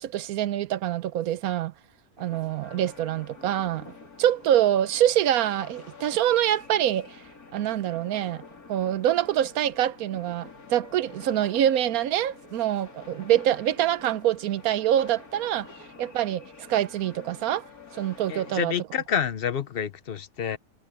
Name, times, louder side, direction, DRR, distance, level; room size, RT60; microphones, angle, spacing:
voice 1, 0.0-1.7 2.2-3.9 4.2-7.2 7.5-8.4 8.7-15.7 16.0-17.7 17.9-18.7, right 11 dB, 85° right, 1.2 m, -25 dB
sound 1, 2.2-18.6, left 4 dB, 85° left, 3.8 m, -48 dB
voice 2, 18.3-20.6, left 8 dB, 50° left, 0.9 m, -28 dB
omnidirectional pair, 1.5 m